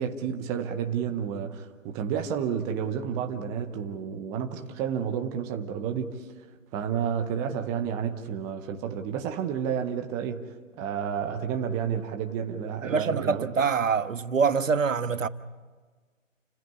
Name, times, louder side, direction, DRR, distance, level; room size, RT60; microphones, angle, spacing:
voice 1, 0.0-6.1 6.7-10.4 10.8-13.5, right 8 dB, 10° right, 0.7 m, -30 dB
voice 2, 12.8-15.3, right 5 dB, 75° right, 1.4 m, -25 dB
29.0 x 15.5 x 9.5 m
figure-of-eight pair, 145°, 39 cm